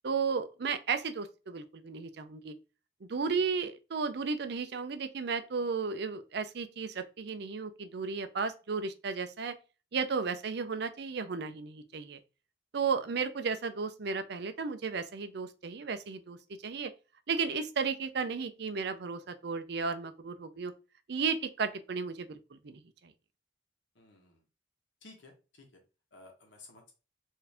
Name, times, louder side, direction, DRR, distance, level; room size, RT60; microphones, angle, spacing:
voice 1, 0.0-2.5 3.0-9.5 9.9-12.2 12.7-16.4 16.6-16.9 17.3-20.7 21.1-23.1, right 5 dB, 65° right, 0.5 m, -34 dB
voice 2, 23.9-24.4 25.0-25.8 26.1-26.9, left 3 dB, 90° left, 1.1 m, -55 dB
4.5 x 2.7 x 3.4 m
head